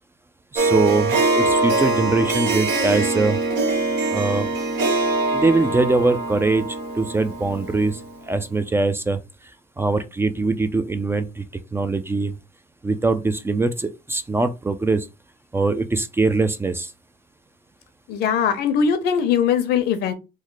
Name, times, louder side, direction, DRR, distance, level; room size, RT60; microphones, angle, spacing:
voice 1, 0.5-3.4 4.1-4.5 5.3-6.6 7.0-8.0 8.3-9.2 9.8-11.4 11.7-12.3 12.8-15.1 15.5-16.9, right 3 dB, 15° right, 0.3 m, -22 dB
Harp, 0.6-8.1, right 2 dB, 80° right, 1.1 m, -23 dB
voice 2, 18.1-20.1, left 7 dB, 75° left, 0.7 m, -20 dB
3.1 x 2.1 x 3.8 m
cardioid pair, 110°, 17 cm